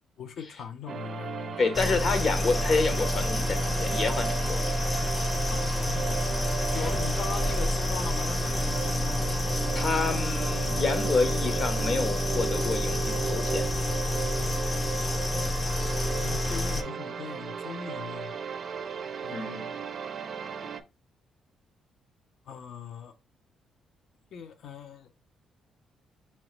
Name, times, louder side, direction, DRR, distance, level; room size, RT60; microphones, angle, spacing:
voice 1, 0.2-1.6 5.5-9.3 15.3-15.6 16.2-18.4 19.2-19.8 22.5-23.1 24.3-25.1, left 7 dB, 70° left, 0.6 m, -40 dB
sound 1, 0.9-20.8, right 7 dB, 50° right, 0.4 m, -36 dB
voice 2, 1.6-4.6 9.7-13.7 19.3-19.7, left 3 dB, 55° left, 0.9 m, -28 dB
sound 2, 1.7-16.8, left 1 dB, 25° left, 0.4 m, -28 dB
3.9 x 3.1 x 3.1 m
cardioid pair, 90°, 0 cm